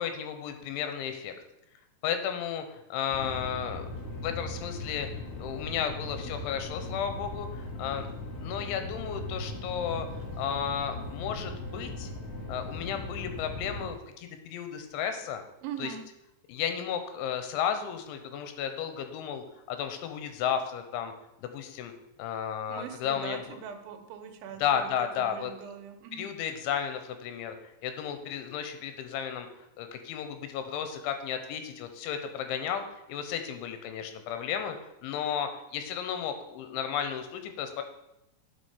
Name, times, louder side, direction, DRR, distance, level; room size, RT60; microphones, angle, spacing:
voice 1, 0.0-1.3 2.0-5.1 5.4-8.1 8.4-10.1 10.4-12.1 12.5-15.4 15.8-15.9 16.5-21.1 21.4-21.9 22.2-23.6 24.6-25.5 26.1-27.6 27.8-29.5 29.8-34.8 35.0-37.8, left 8 dB, 85° left, 8 dB, 3.3 m, -33 dB
sound 1, 3.1-13.9, left 2 dB, 60° left, 5.3 m, -38 dB
voice 2, 15.6-16.0 22.7-24.9 25.2-26.3, right 8 dB, 85° right, 6 dB, 3.3 m, -41 dB
9.8 x 6.0 x 5.1 m, 0.89 s
omnidirectional pair, 5.3 m